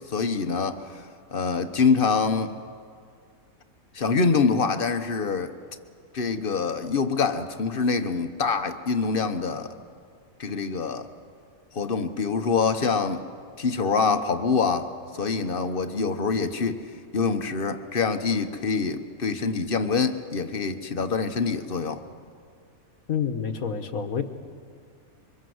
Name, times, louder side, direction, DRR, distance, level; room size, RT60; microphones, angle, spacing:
voice 1, 0.1-1.1 1.3-2.5 3.9-5.5 6.1-9.7 10.4-11.1 11.7-13.2 13.6-14.9 15.1-16.8 17.1-22.0, left 5 dB, 40° left, 9 dB, 1.2 m, -25 dB
voice 2, 23.1-24.2, left 7 dB, 70° left, 8 dB, 1.7 m, -28 dB
26.5 x 24.0 x 7.9 m, 2.2 s
omnidirectional pair, 1.6 m